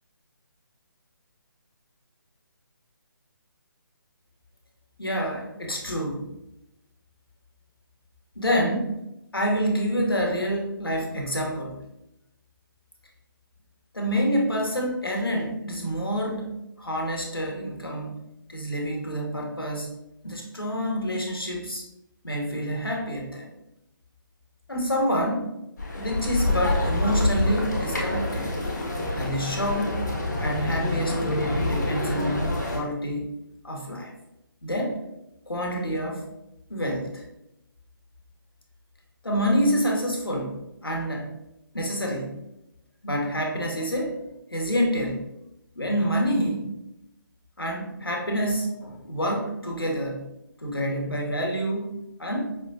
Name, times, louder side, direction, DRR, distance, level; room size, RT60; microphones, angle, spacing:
voice 1, 5.0-6.3 8.4-9.0 9.3-11.8 13.9-18.2 18.5-19.9 20.2-21.8 22.2-23.5 24.7-25.5 26.0-28.5 29.1-30.0 30.4-33.3 33.6-34.1 34.6-35.0 35.5-36.2 36.7-37.2 39.2-41.3 41.7-42.4 43.0-44.2 44.5-45.2 45.8-46.7 47.6-50.3 50.6-51.9 52.2-52.6, equal, 90° left, 0 dB, 1.1 m, -27 dB
sound 1, 25.8-32.8, left 2 dB, 50° left, 1.0 m, -27 dB
5.5 x 2.3 x 2.7 m, 0.87 s
figure-of-eight pair, 145°, 12 cm